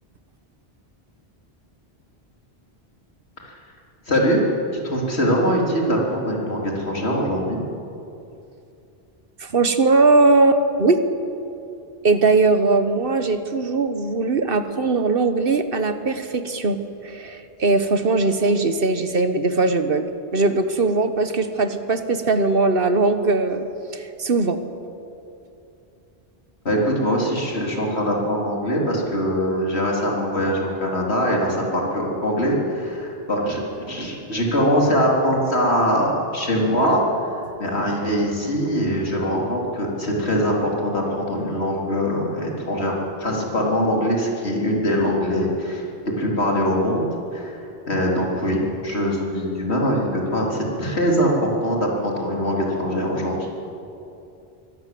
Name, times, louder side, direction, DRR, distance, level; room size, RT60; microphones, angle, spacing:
voice 1, 4.1-4.4 4.7-7.6 26.6-37.0 37.6-42.9 43.2-47.1 47.3-47.6 47.9-53.3, equal, 85° left, -2 dB, 4.1 m, -22 dB
voice 2, 9.4-11.0 12.0-20.0 20.3-23.6 23.9-24.6, right 3 dB, 60° right, 9 dB, 1.4 m, -20 dB
23.5 x 18.0 x 7.8 m, 2.7 s
omnidirectional pair, 1.1 m